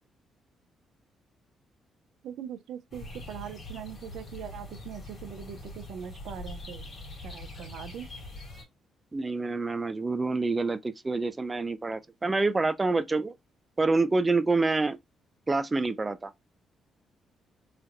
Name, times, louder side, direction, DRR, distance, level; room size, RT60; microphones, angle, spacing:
voice 1, 2.2-6.9 7.2-8.1, right 9 dB, 80° right, 0.5 m, -41 dB
sound 1, 2.9-8.6, left 2 dB, 40° left, 2.2 m, -43 dB
voice 2, 9.1-13.3 13.8-15.0 15.5-16.3, right 3 dB, 25° right, 0.3 m, -27 dB
3.3 x 3.2 x 2.4 m
cardioid pair, 90°, 0 cm